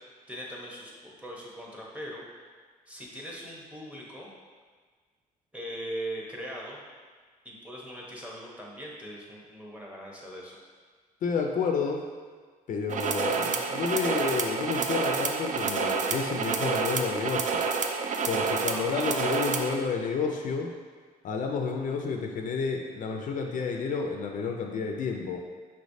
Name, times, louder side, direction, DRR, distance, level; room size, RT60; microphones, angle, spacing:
voice 1, 0.0-2.2 2.9-4.3 5.5-6.8 7.4-10.6 18.7-19.2, equal, 10° right, -3 dB, 0.9 m, -40 dB
voice 2, 11.2-12.0 12.7-17.6 18.3-20.7 21.2-25.4, left 5 dB, 60° left, 2 dB, 0.4 m, -30 dB
sound 1, 12.9-19.8, right 5 dB, 55° right, 0.4 m, -29 dB
5.5 x 3.2 x 2.7 m, 1.5 s
cardioid pair, 100°, 16 cm